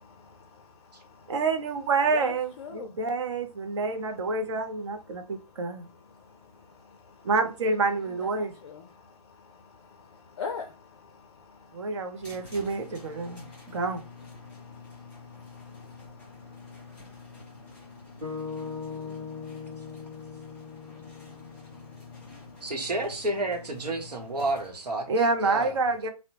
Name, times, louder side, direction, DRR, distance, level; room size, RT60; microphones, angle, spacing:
voice 1, 0.0-1.4 2.1-3.0 5.2-7.3 7.9-13.8 14.4-22.7, left 5 dB, 45° left, 0.4 m, -46 dB
voice 2, 1.3-5.9 7.2-8.5 11.7-13.4 13.7-14.0 25.1-26.1, right 3 dB, 45° right, 0.6 m, -28 dB
sound 1, 12.2-24.7, left 4 dB, 5° left, 1.3 m, -48 dB
sound 2, 18.2-22.5, left 5 dB, 25° right, 1.2 m, -40 dB
voice 3, 22.6-25.8, right 2 dB, 80° right, 0.9 m, -31 dB
2.7 x 2.0 x 2.7 m
hypercardioid pair, 150°, 20 cm